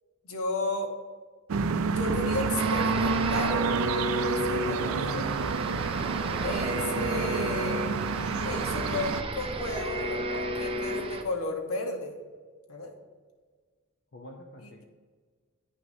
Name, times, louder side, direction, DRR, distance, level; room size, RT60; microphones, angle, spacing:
voice 1, 0.2-0.9 1.9-3.6 4.3-5.3 6.4-7.8 8.4-12.1 12.7-12.9 14.6-14.7, left 2 dB, 80° left, 4 dB, 1.0 m, -33 dB
sound 1, 1.5-9.2, right 5 dB, 80° right, 0.4 m, -29 dB
sound 2, 2.6-11.2, equal, 25° right, 0.5 m, -33 dB
voice 2, 6.8-7.3 14.1-14.8, left 1 dB, 55° left, 2 dB, 0.6 m, -47 dB
9.3 x 6.2 x 2.7 m, 1.5 s
head